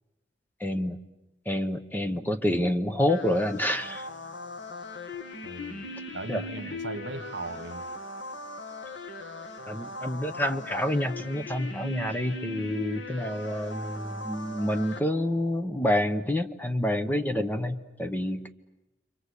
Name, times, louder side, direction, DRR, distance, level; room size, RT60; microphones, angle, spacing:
voice 1, 0.6-1.0 1.5-4.1 6.3-6.4 9.7-18.5, left 1 dB, 10° left, 9 dB, 0.9 m, -28 dB
sound 1, 3.1-15.0, left 2 dB, 70° left, 2.3 m, -39 dB
voice 2, 5.4-5.9 6.1-7.9, right 3 dB, 70° right, 9 dB, 1.6 m, -38 dB
29.0 x 24.0 x 8.2 m, 0.99 s
head